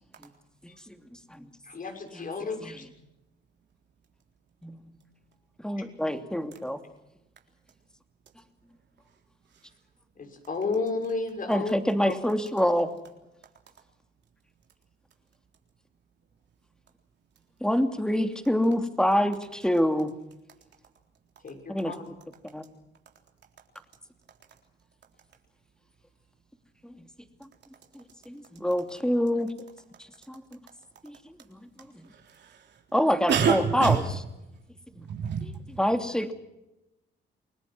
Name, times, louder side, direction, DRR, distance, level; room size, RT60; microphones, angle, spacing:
voice 1, 1.6-2.9 5.8-5.9 10.2-11.7 12.0-12.1 21.4-22.0, left 4 dB, 45° left, 5 dB, 6.4 m, -32 dB
voice 2, 5.6-6.8 11.5-12.9 17.6-20.1 21.7-21.9 22.5-22.6 27.9-29.5 30.3-30.4 31.0-31.2 31.5-31.6 31.9-32.1 32.9-34.0 35.0-35.1 35.8-36.3, equal, 5° left, 7 dB, 2.8 m, -26 dB
voice 3, 32.1-32.8 33.3-34.1 35.1-35.6, right 7 dB, 60° right, 2 dB, 3.8 m, -27 dB
29.0 x 20.5 x 6.2 m, 0.91 s
cardioid pair, 90°, 20 cm